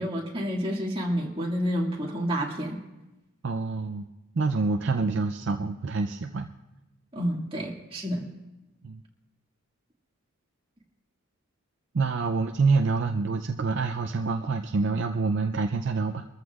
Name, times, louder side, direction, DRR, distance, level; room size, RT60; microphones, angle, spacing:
voice 1, 0.0-2.8 7.1-8.3, equal, 25° right, -2 dB, 2.1 m, -29 dB
voice 2, 3.4-4.1 4.3-6.5 8.8-9.0 11.9-16.2, right 4 dB, 55° right, 5 dB, 0.5 m, -26 dB
24.5 x 14.0 x 2.4 m, 1.0 s
head